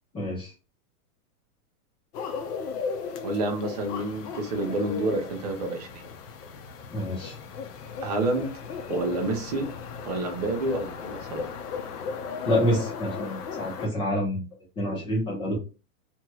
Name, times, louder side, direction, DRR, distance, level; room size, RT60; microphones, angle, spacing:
voice 1, 0.1-0.5 6.9-7.4 12.5-14.4 14.8-15.6, equal, 10° left, -4 dB, 0.9 m, -27 dB
sound 1, 2.1-13.9, left 5 dB, 85° left, 0.8 m, -36 dB
voice 2, 3.2-6.1 8.0-8.5 8.9-9.7 10.0-11.5, right 2 dB, 30° right, 2 dB, 0.4 m, -28 dB
3.0 x 2.9 x 2.3 m, 0.31 s
supercardioid pair, 165°, 46 cm